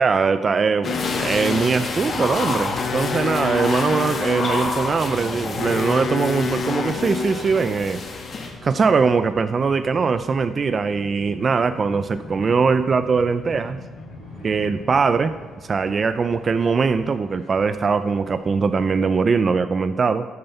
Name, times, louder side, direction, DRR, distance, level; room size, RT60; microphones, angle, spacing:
voice 1, 0.0-8.0 8.6-13.8 14.4-15.3 15.6-20.3, right 5 dB, 40° right, 11 dB, 0.4 m, -21 dB
sound 1, 0.8-19.3, left 7 dB, 65° left, 0.5 m, -33 dB
sound 2, 0.8-8.5, left 3 dB, 50° left, 1.7 m, -29 dB
sound 3, 4.2-17.2 17.6-17.7, left 1 dB, 85° right, 3.7 m, -44 dB
12.5 x 5.4 x 5.7 m, 1.3 s
cardioid pair, 90°, 0 cm